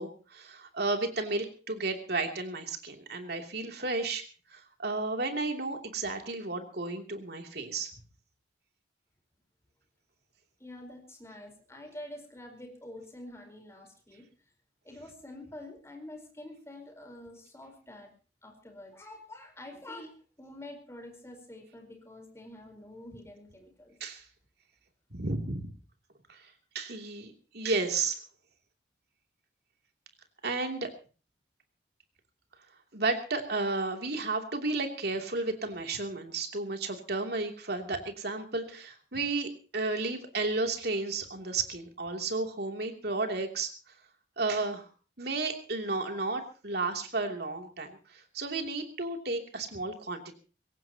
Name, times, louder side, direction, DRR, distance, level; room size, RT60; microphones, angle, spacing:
voice 1, 0.0-4.2 4.5-7.9 24.0-24.2 25.1-25.7 26.3-26.4 26.7-28.2 30.4-30.9 32.9-43.7 44.4-44.9 45.2-50.4, right 3 dB, 60° right, 4 dB, 3.0 m, -33 dB
voice 2, 10.6-14.2 14.8-18.1 18.4-24.0, left 1 dB, 15° left, 4 dB, 4.4 m, -47 dB
22.5 x 17.5 x 2.9 m, 0.36 s
head